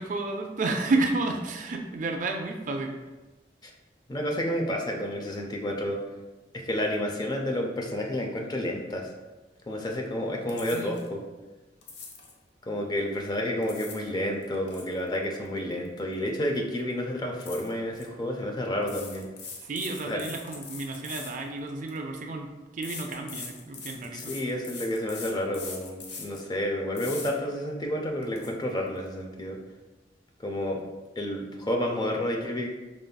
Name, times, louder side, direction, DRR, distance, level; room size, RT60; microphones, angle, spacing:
voice 1, 0.0-3.0 10.7-11.0 19.6-24.3, right 3 dB, 45° right, 3 dB, 0.4 m, -31 dB
voice 2, 4.1-6.0 6.5-9.1 9.7-11.2 12.6-19.3 20.1-20.2 24.1-29.6 30.4-30.8 31.2-32.7, left 1 dB, 25° left, 1 dB, 0.4 m, -30 dB
sound 1, 10.5-11.1 11.8-12.4 13.4-14.1 14.4-16.3 16.6-16.8 17.4-18.1 18.8-22.0 22.8-26.5 27.0-27.3 27.8-27.9 28.2-28.5, left 4 dB, 75° left, 0.7 m, -42 dB
5.2 x 3.3 x 2.2 m, 1.2 s
head